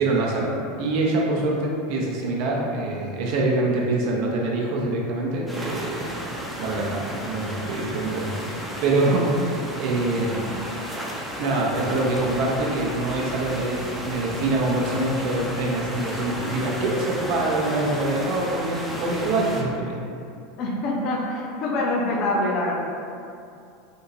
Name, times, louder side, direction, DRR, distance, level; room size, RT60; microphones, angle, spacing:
voice 1, 0.0-6.1 6.6-10.5 11.4-20.0, right 2 dB, 50° right, -2 dB, 0.5 m, -25 dB
sound 1, 5.5-19.6, equal, 5° right, 0.5 m, -33 dB
voice 2, 20.6-22.8, left 2 dB, 45° left, -1 dB, 0.5 m, -25 dB
3.5 x 2.7 x 2.7 m, 2.5 s
figure-of-eight pair, 80°, 0 cm